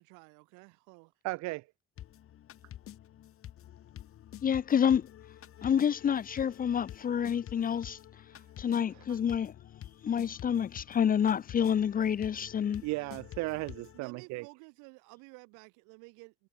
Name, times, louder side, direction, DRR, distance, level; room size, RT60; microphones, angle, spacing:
voice 1, 0.0-1.1 5.6-5.7 13.9-16.5, right 30 dB, 85° right, 2.6 m, -53 dB
voice 2, 1.2-1.6 12.8-14.4, right 22 dB, 65° right, 0.6 m, -35 dB
sound 1, 2.0-14.0, left 11 dB, 45° left, 1.3 m, -49 dB
voice 3, 4.4-5.1 5.6-8.0 8.6-9.5 10.0-12.8, left 8 dB, 30° left, 0.6 m, -28 dB
supercardioid pair, 100°, 30 cm